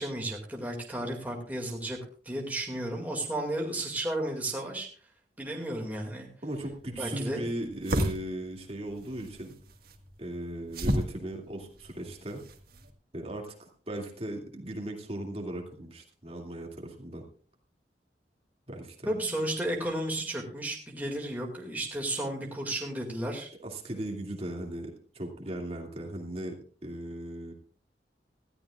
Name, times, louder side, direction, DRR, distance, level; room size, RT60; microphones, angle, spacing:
voice 1, 0.0-2.0 2.2-4.9 5.4-6.3 7.0-7.4 19.1-23.5, right 1 dB, 10° right, 0 dB, 2.2 m, -33 dB
voice 2, 6.4-9.5 10.2-12.4 13.1-17.2 18.7-19.1 23.6-27.5, right 1 dB, 35° right, 1 dB, 2.4 m, -37 dB
sound 1, 6.6-12.9, equal, 55° right, 1.7 m, -35 dB
19.5 x 14.0 x 2.4 m, 0.43 s
head